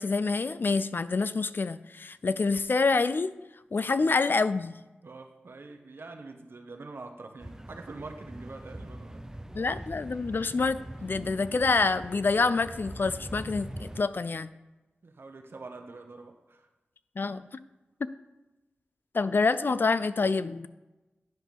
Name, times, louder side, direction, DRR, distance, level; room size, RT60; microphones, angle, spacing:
voice 1, 0.0-3.3 3.7-4.8 9.5-14.5 17.2-17.4 19.1-20.7, left 4 dB, 55° left, 14 dB, 0.4 m, -27 dB
voice 2, 5.0-9.2 15.0-16.7, right 3 dB, 70° right, 5 dB, 1.0 m, -45 dB
sound 1, 7.4-14.0, right 1 dB, 15° right, 0.6 m, -42 dB
10.5 x 3.6 x 6.0 m, 1.1 s
cardioid pair, 45°, 4 cm